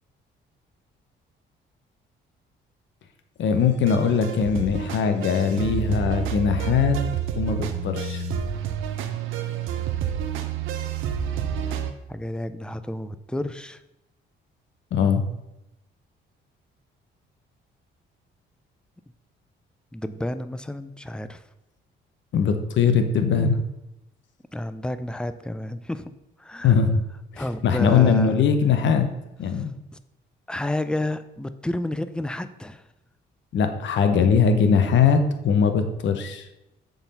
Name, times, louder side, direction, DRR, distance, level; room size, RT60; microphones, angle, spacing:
voice 1, 3.4-7.0 7.4-8.2 14.9-15.2 22.3-23.6 26.6-27.0 27.3-29.1 29.4-29.7 33.5-36.4, left 6 dB, 70° left, 8 dB, 0.9 m, -21 dB
sound 1, 3.9-11.9, right 8 dB, 90° right, 0.7 m, -29 dB
voice 2, 12.1-13.8 19.9-21.4 24.5-26.1 26.4-26.8 27.4-28.4 29.5-29.6 30.5-32.8, left 1 dB, 5° left, 12 dB, 0.4 m, -30 dB
7.1 x 4.0 x 5.4 m, 0.91 s
cardioid pair, 90°, 20 cm